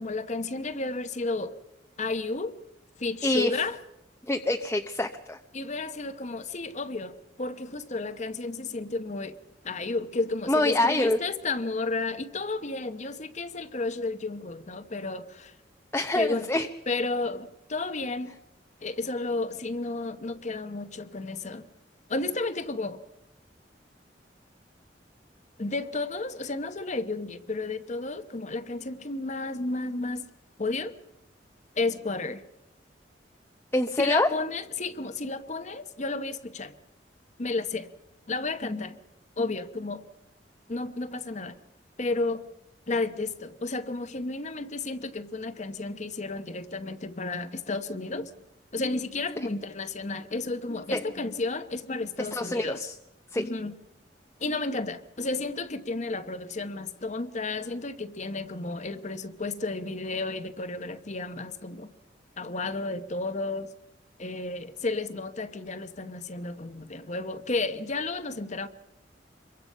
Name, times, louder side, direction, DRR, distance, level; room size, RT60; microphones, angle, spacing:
voice 1, 0.0-1.5 2.0-2.5 3.0-3.8 5.5-9.4 9.6-15.5 16.1-16.5 16.9-18.3 18.8-21.7 22.1-23.0 25.6-30.3 30.6-30.9 31.8-32.4 34.0-36.7 37.4-37.9 38.3-39.0 39.4-40.0 40.7-41.6 42.0-42.4 42.9-48.3 48.7-52.9 53.3-53.7 54.4-61.9 62.4-63.7 64.2-68.7, left 3 dB, 40° left, 1.0 m, -32 dB
voice 2, 4.3-5.4 10.5-11.2 15.9-16.7 33.7-34.3 50.9-51.0 52.2-52.9 53.3-53.5, left 1 dB, 15° left, 0.8 m, -25 dB
26.5 x 23.0 x 5.5 m
head